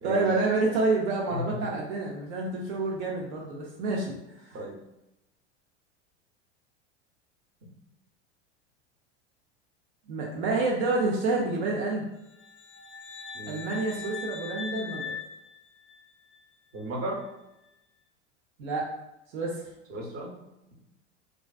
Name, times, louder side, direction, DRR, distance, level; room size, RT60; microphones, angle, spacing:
voice 1, 0.0-4.2 10.1-12.1 13.5-15.1 18.6-18.9 19.3-19.7, right 3 dB, 70° right, -2 dB, 0.6 m, -28 dB
voice 2, 1.3-1.7 4.5-4.8 7.6-7.7 13.3-13.6 16.7-17.2 19.9-20.3, equal, 40° right, -1 dB, 0.8 m, -35 dB
sound 1, 12.2-16.3, left 6 dB, 30° left, 0.5 m, -40 dB
2.4 x 2.3 x 2.3 m, 0.90 s
hypercardioid pair, 95°, 35 cm